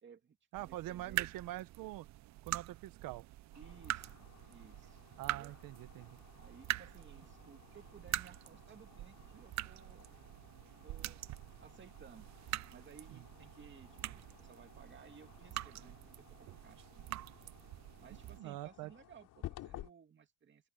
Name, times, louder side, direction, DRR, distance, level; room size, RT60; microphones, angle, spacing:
voice 1, 0.0-1.4 3.6-4.1 4.5-5.0 5.3-5.6 6.4-10.3 10.6-11.2 11.6-12.3 12.7-17.6 18.0-20.7, right 7 dB, 35° right, 2.4 m, -59 dB
sound 1, 0.5-18.4, right 16 dB, 55° right, 0.6 m, -44 dB
voice 2, 0.5-2.1 2.4-3.3 5.2-6.2 13.1-13.2 18.4-18.9, right 15 dB, 75° right, 1.4 m, -44 dB
sound 2, 3.5-19.9, left 14 dB, 70° left, 3.5 m, -56 dB
open air
cardioid pair, 110°, 34 cm